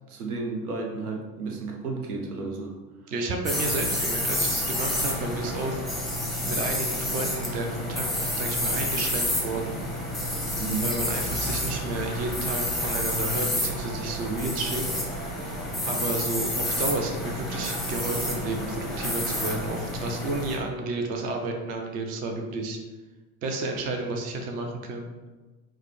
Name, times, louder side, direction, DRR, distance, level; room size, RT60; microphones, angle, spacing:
voice 1, 0.1-2.7 10.6-10.9, right 4 dB, 75° right, 1 dB, 0.8 m, -32 dB
voice 2, 3.1-5.8 6.5-8.1 8.3-9.8 10.8-14.8 15.9-22.8 23.4-25.1, right 2 dB, 20° right, 3 dB, 0.3 m, -31 dB
sound 1, 3.5-20.6, left 1 dB, ahead, 0.7 m, -29 dB
4.8 x 2.1 x 3.0 m, 1.2 s
figure-of-eight pair, 70°, 44 cm